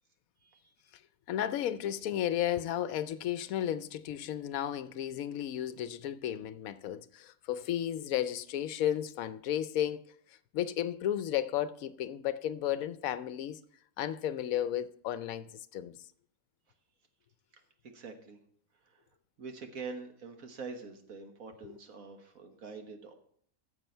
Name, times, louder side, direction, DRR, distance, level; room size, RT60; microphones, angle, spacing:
voice 1, 0.4-0.7 17.5-18.4 18.7-19.1 19.4-23.1, right 4 dB, 75° right, 1.7 m, -45 dB
voice 2, 1.3-10.0 10.3-13.6 14.0-15.9 21.6-21.7, left 11 dB, 75° left, 1.0 m, -33 dB
14.5 x 6.9 x 4.4 m
omnidirectional pair, 1.5 m